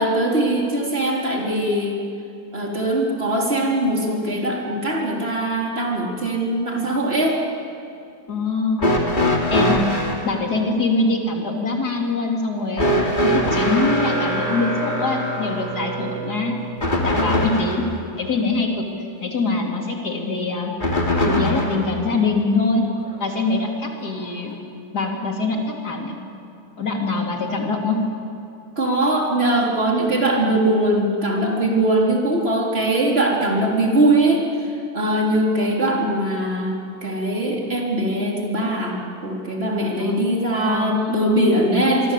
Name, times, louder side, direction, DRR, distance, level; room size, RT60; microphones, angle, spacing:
voice 1, 0.0-2.0 2.5-7.4 17.1-17.6 28.8-34.7 34.9-42.1, right 1 dB, 40° right, -2 dB, 4.1 m, -21 dB
voice 2, 8.3-9.1 9.5-12.9 13.2-16.6 17.0-17.9 18.2-18.9 19.2-20.7 21.2-22.8 23.2-24.6 24.9-26.2 26.8-28.0 35.9-36.0 40.0-40.3 40.6-41.4, left 3 dB, 85° left, 1 dB, 3.8 m, -23 dB
sound 1, 8.8-10.2 12.8-17.9 20.8-21.9 23.1-23.2 24.3-24.4, equal, 30° left, 3.3 m, -22 dB
25.5 x 24.0 x 8.4 m, 2.6 s
omnidirectional pair, 1.7 m